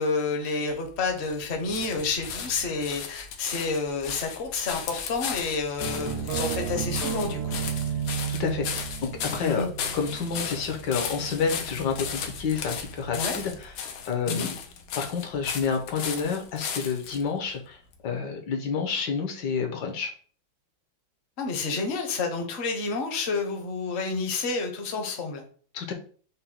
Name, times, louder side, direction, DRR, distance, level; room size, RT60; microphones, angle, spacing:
voice 1, 0.0-7.6 9.4-9.7 13.1-13.4 14.3-14.5 21.4-25.4, left 4 dB, 50° left, 4 dB, 0.8 m, -29 dB
sound 1, 0.7-17.2 17.9-18.0, left 7 dB, 85° left, 1.5 m, -36 dB
sound 2, 5.8-13.7, right 8 dB, 70° right, 1.1 m, -34 dB
voice 2, 8.3-9.7 9.9-14.5 14.9-20.1 25.7-25.9, left 6 dB, 65° left, 4 dB, 1.4 m, -29 dB
5.3 x 2.2 x 4.3 m, 0.43 s
omnidirectional pair, 2.1 m